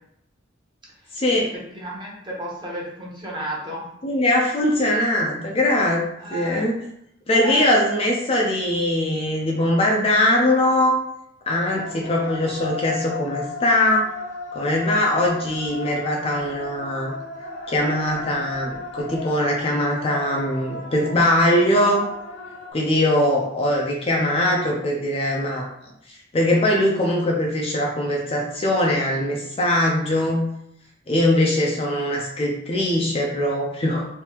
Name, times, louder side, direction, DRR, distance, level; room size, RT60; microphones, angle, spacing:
voice 1, 1.1-1.5 4.0-6.0 6.3-6.8 7.3-11.0 11.5-14.1 14.5-17.1 17.7-22.1 22.7-25.7 26.3-30.4 31.1-34.1, left 1 dB, 30° left, -1 dB, 0.4 m, -21 dB
voice 2, 1.7-3.9 6.2-6.6 7.4-7.7, right 1 dB, 25° right, -5 dB, 0.9 m, -32 dB
sound 1, 11.7-22.7, left 3 dB, 70° left, 0.8 m, -35 dB
3.3 x 2.7 x 2.9 m, 0.76 s
head